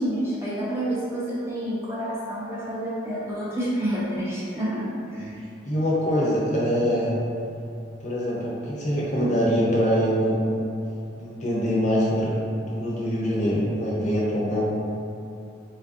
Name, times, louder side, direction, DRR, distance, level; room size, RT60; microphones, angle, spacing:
voice 1, 0.0-5.4, right 1 dB, 15° right, -9 dB, 0.5 m, -29 dB
voice 2, 5.6-7.2 8.0-10.4 11.2-14.7, equal, 40° left, -6 dB, 0.6 m, -24 dB
4.4 x 2.4 x 2.5 m, 2.7 s
head